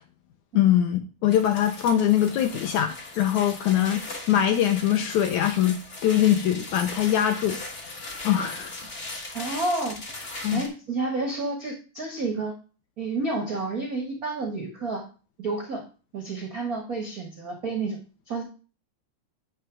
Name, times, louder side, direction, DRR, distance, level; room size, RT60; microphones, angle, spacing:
voice 1, 0.5-7.6 8.2-8.7 10.4-10.6, left 11 dB, 75° left, 1.8 m, -23 dB
sound 1, 1.3-10.7, left 2 dB, 55° left, 0.7 m, -39 dB
voice 2, 9.3-10.0 10.5-12.5 13.0-15.0 15.4-15.8 16.1-18.0 18.3-18.4, right 3 dB, 75° right, 0.8 m, -30 dB
10.0 x 3.4 x 6.0 m
omnidirectional pair, 3.9 m